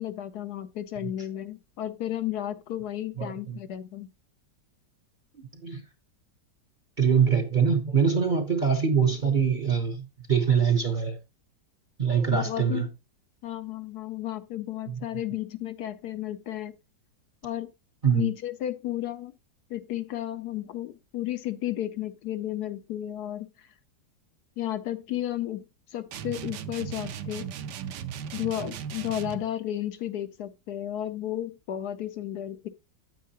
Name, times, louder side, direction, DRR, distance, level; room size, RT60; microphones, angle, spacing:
voice 1, 0.0-4.1 12.3-12.9 13.4-16.8 17.4-17.7 18.1-19.3 19.7-23.7 24.6-27.5 28.3-32.7, left 12 dB, 70° left, 1.1 m, -33 dB
voice 2, 3.2-3.6 5.3-5.8 7.0-11.2 12.0-12.9 14.9-15.0 18.0-18.3, right 6 dB, 40° right, 0.8 m, -24 dB
sound 1, 26.1-29.5, right 8 dB, 75° right, 1.3 m, -37 dB
9.3 x 8.3 x 2.8 m
omnidirectional pair, 1.9 m